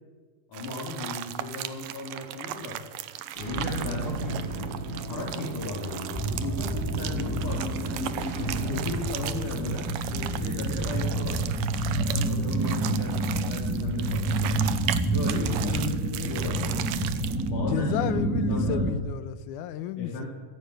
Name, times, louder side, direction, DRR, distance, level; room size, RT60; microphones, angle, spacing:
voice 1, 0.5-2.8 3.4-4.7 5.1-8.0 8.7-11.5 12.1-14.6 15.1-16.9 17.5-18.1 18.5-18.8 20.0-20.3, left 2 dB, 50° left, 5.1 m, -35 dB
sound 1, 0.5-17.5, right 12 dB, 75° right, 2.2 m, -37 dB
sound 2, 3.3-8.9, right 1 dB, 40° right, 1.1 m, -35 dB
sound 3, 6.1-18.9, right 2 dB, 10° right, 1.0 m, -28 dB
voice 2, 15.6-15.9 17.7-20.3, left 11 dB, 85° left, 1.8 m, -32 dB
27.0 x 12.0 x 9.3 m
omnidirectional pair, 4.6 m